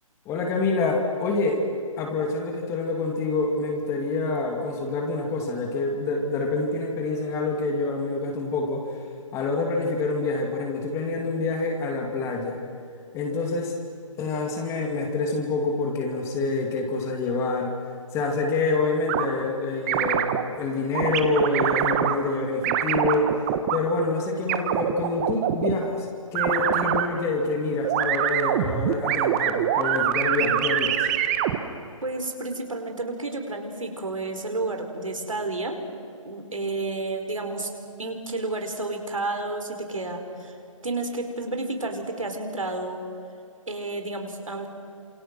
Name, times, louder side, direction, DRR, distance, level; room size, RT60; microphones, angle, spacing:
voice 1, 0.2-1.7 2.0-9.0 9.3-12.6 13.1-13.8 14.2-17.7 18.1-23.5 23.7-31.1, left 3 dB, 15° left, 2 dB, 2.9 m, -27 dB
sound 1, 19.1-19.3 19.9-20.4 21.0-22.2 22.6-23.8 24.5-25.7 26.4-27.1 27.8-31.6, right 11 dB, 25° right, 1.4 m, -24 dB
voice 2, 32.0-35.7 36.2-37.7 38.0-40.6 40.8-43.0 43.7-44.7, right 2 dB, 75° right, 4 dB, 4.6 m, -31 dB
29.5 x 27.5 x 6.2 m, 2.6 s
figure-of-eight pair, 135°, 17 cm